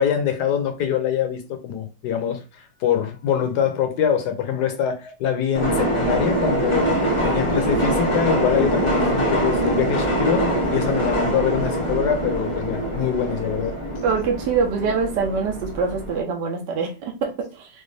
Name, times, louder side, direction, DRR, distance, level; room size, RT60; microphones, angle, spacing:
voice 1, 0.0-2.4 2.8-6.9 7.2-13.7, left 8 dB, 70° left, 1.2 m, -24 dB
sound 1, 5.5-16.2, right 1 dB, 30° left, 0.6 m, -23 dB
voice 2, 14.0-17.7, right 5 dB, 70° right, 1.4 m, -24 dB
5.1 x 2.2 x 3.2 m
omnidirectional pair, 2.1 m